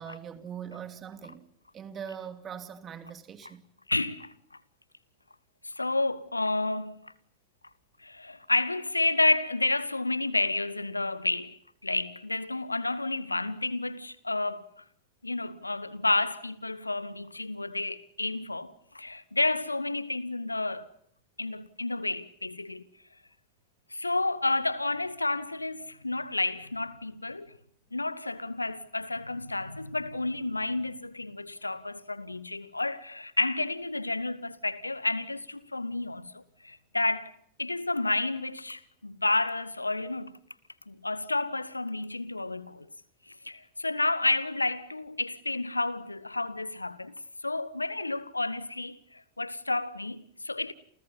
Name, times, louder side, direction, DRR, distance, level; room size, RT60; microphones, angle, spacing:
voice 1, 0.0-1.5 1.7-3.6, right 8 dB, 25° right, 2.8 m, -41 dB
voice 2, 3.9-4.3 5.6-7.1 8.0-11.6 11.8-14.8 15.2-20.9 21.4-22.8 23.9-27.6 27.9-37.3 37.6-40.4 40.9-42.9 43.3-47.1 47.4-50.7, left 2 dB, 85° left, 1.3 m, -30 dB
30.0 x 29.0 x 5.6 m
figure-of-eight pair, 90°, 0 cm